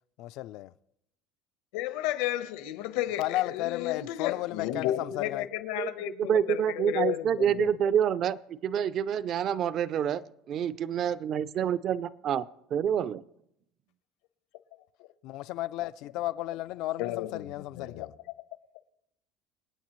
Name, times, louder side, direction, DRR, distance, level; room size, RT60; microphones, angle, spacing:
voice 1, 0.2-0.7 3.2-5.5 15.2-18.1, left 15 dB, 55° left, 0.4 m, -34 dB
voice 2, 1.7-7.7 17.0-17.4 17.8-18.1, left 13 dB, 75° left, 1.0 m, -32 dB
voice 3, 6.2-12.5 12.7-13.2, right 9 dB, 35° right, 0.4 m, -27 dB
27.0 x 9.0 x 3.1 m
cardioid pair, 155°, 0 cm